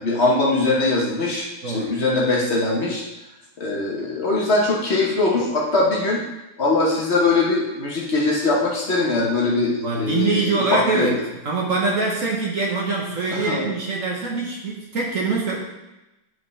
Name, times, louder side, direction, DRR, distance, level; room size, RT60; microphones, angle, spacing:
voice 1, 0.0-3.0 3.6-6.2 6.6-11.1 13.3-13.7, left 2 dB, 40° left, -3 dB, 1.3 m, -21 dB
voice 2, 9.8-15.6, right 3 dB, 50° right, -3 dB, 1.3 m, -24 dB
9.4 x 4.9 x 3.2 m, 0.98 s
omnidirectional pair, 2.0 m